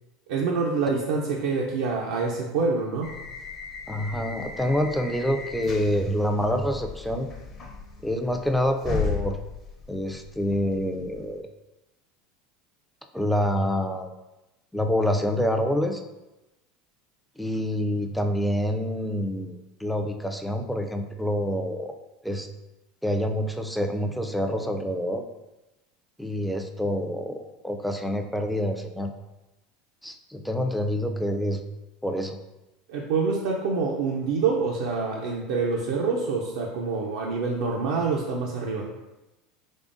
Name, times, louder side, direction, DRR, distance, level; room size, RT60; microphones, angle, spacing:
voice 1, 0.3-3.1 32.9-38.9, right 4 dB, 75° right, -2 dB, 0.4 m, -26 dB
sound 1, 3.0-11.4, left 5 dB, 40° left, 0.7 m, -36 dB
voice 2, 3.9-7.3 8.0-9.4 9.9-11.4 13.1-14.1 14.7-16.0 17.4-21.9 22.2-22.5 23.0-25.2 26.2-29.1 30.0-31.6 32.0-32.4, equal, ahead, 4 dB, 0.3 m, -27 dB
3.6 x 3.4 x 2.5 m, 1.0 s
supercardioid pair, 115°, 0 cm